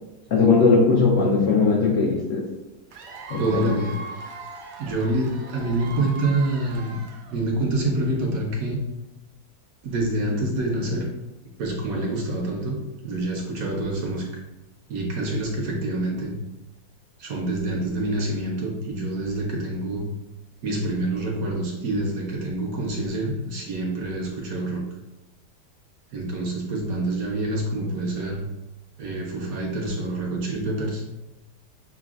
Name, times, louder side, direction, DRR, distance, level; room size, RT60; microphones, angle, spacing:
voice 1, 0.3-2.5 3.3-3.7, left 4 dB, 65° left, -3 dB, 0.8 m, -19 dB
Cheering / Applause / Crowd, 2.9-7.6, right 3 dB, 85° right, 1.2 m, -39 dB
voice 2, 3.4-4.0 4.8-7.0 7.3-8.8 9.8-11.1 11.6-14.4 14.9-16.3 17.2-20.1 20.6-24.9 26.1-28.4 29.0-31.0, right 2 dB, 70° right, 0 dB, 0.9 m, -26 dB
6.4 x 2.2 x 2.3 m, 0.99 s
omnidirectional pair, 1.8 m